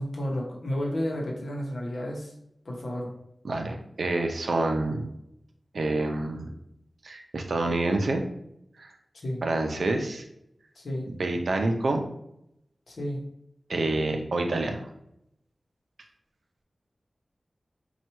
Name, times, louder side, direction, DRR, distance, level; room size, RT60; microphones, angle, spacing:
voice 1, 0.0-2.3 2.6-3.1 9.2-9.4 10.7-11.1 12.9-13.2, equal, 75° left, -1 dB, 0.8 m, -31 dB
voice 2, 3.4-5.1 5.7-6.5 7.0-8.3 8.8-8.9 9.4-10.2 11.2-12.0 13.7-14.9, right 2 dB, 80° right, 4 dB, 0.5 m, -27 dB
4.4 x 2.3 x 2.9 m, 0.79 s
wide cardioid pair, 80°, 0 cm